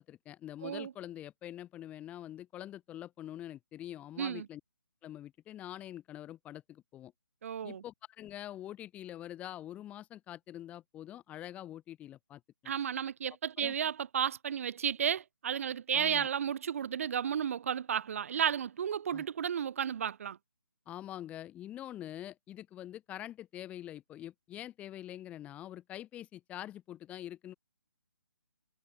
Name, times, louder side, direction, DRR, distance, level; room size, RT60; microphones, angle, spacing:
voice 1, 0.0-4.6 5.0-7.1 7.6-12.7 13.6-13.7 15.9-16.3 19.1-19.2 20.8-27.5, left 12 dB, 10° left, 1.7 m, -45 dB
voice 2, 7.4-7.8 12.7-20.4, right 8 dB, 40° right, 0.3 m, -33 dB
figure-of-eight pair, 155°, 11 cm